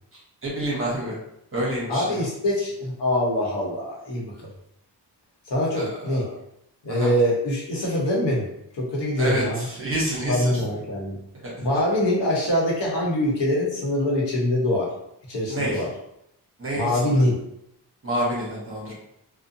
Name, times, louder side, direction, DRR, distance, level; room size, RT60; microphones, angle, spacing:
voice 1, 0.4-1.2 1.5-2.2 5.7-6.3 6.9-7.1 9.2-10.6 11.4-11.5 15.5-15.8 16.6-17.2 18.0-18.9, right 1 dB, 30° right, -5 dB, 0.9 m, -28 dB
voice 2, 1.9-4.3 5.5-6.3 6.8-8.5 8.8-9.6 10.3-11.2 11.6-14.9 15.3-15.9 16.7-17.3, left 1 dB, 75° left, -4 dB, 1.1 m, -24 dB
2.5 x 2.2 x 2.7 m, 0.78 s
wide cardioid pair, 105°, 42 cm